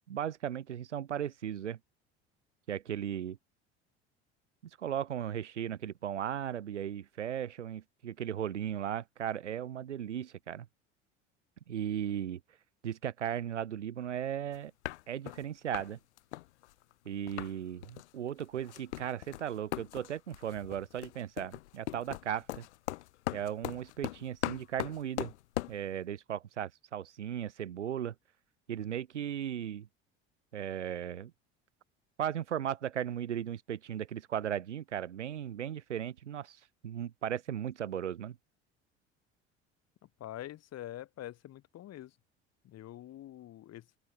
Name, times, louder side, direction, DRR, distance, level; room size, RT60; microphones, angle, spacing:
voice 1, 0.1-1.8 2.7-3.4 4.8-10.7 11.7-12.4 12.8-14.7 15.1-16.0 17.0-22.7 23.3-25.3 25.7-28.1 28.7-29.9 30.5-31.3 32.2-36.6 36.8-38.4, right 10 dB, 90° right, 1.0 m, -36 dB
sound 1, 14.5-14.6 14.8-15.4 15.7-15.9 16.2-17.5 17.8-18.1 18.4-25.8, left 17 dB, 75° left, 0.7 m, -39 dB
voice 2, 40.2-42.1 42.6-43.8, left 13 dB, 50° left, 2.3 m, -45 dB
open air
hypercardioid pair, 65°, 34 cm